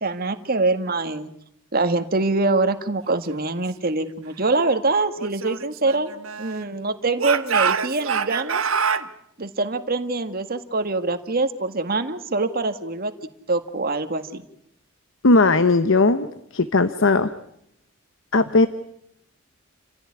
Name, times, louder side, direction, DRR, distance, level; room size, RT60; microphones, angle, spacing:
voice 1, 0.0-1.3 1.7-6.1 6.4-8.6 9.4-13.1 13.5-14.4, right 3 dB, 45° right, 9 dB, 1.8 m, -24 dB
Speech / Shout, 5.2-6.7 7.2-9.1, right 6 dB, 80° right, 1.3 m, -25 dB
voice 2, 15.2-16.3 16.5-17.3 18.3-18.7, left 3 dB, 65° left, 11 dB, 1.0 m, -17 dB
29.0 x 16.0 x 9.7 m, 0.77 s
head